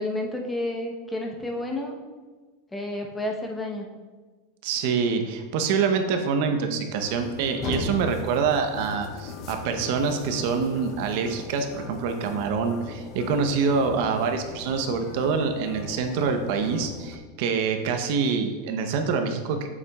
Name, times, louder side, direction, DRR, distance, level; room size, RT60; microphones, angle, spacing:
voice 1, 0.0-1.9 2.7-3.9, left 1 dB, 10° left, 1 dB, 0.9 m, -30 dB
voice 2, 4.6-19.6, right 5 dB, 60° right, 6 dB, 0.8 m, -26 dB
sound 1, 7.0-17.2, left 4 dB, 40° left, 0.7 m, -38 dB
8.1 x 7.4 x 2.4 m, 1.4 s
supercardioid pair, 130°, 0 cm